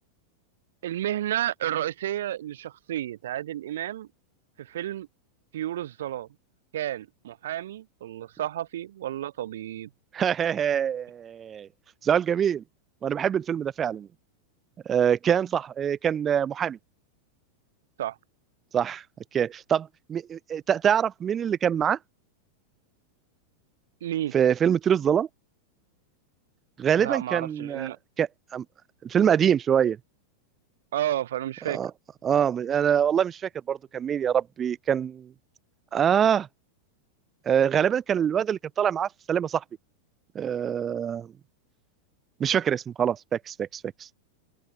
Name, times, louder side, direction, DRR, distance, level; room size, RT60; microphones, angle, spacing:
voice 1, 0.8-4.1 4.6-5.1 5.5-6.3 6.7-9.9 18.0-18.2 24.0-24.3 27.0-28.0 30.9-31.8, right 12 dB, 60° right, 0.9 m, -31 dB
voice 2, 10.1-11.7 12.0-12.6 13.0-14.1 14.9-16.8 18.7-19.0 19.3-22.0 24.3-25.3 26.8-27.9 28.2-28.6 29.0-30.0 31.7-31.9 32.2-35.3 35.9-36.5 37.5-39.6 40.3-41.3 42.4-44.2, right 8 dB, 25° right, 0.4 m, -25 dB
open air
figure-of-eight pair, 90°, 0 cm